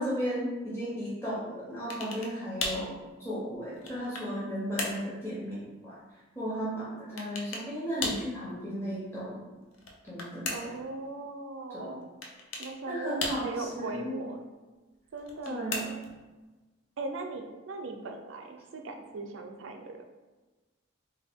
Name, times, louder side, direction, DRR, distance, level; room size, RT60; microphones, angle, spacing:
voice 1, 0.0-2.9 3.2-6.0 6.4-9.4 10.1-10.8 11.7-11.9 12.9-14.2 15.5-15.9, equal, 10° left, -9 dB, 0.7 m, -35 dB
sound 1, 1.9-2.4 2.6-2.9 3.5-4.4 4.8-5.1 7.2-7.7 8.0-8.3 9.7-10.8 12.2-12.8 13.2-13.7 15.2-16.2, left 3 dB, 75° left, 0.5 m, -36 dB
voice 2, 10.5-12.0 12.6-14.5 15.1-16.0 17.0-20.0, right 3 dB, 70° right, 4 dB, 0.4 m, -39 dB
3.4 x 2.2 x 3.4 m, 1.2 s
head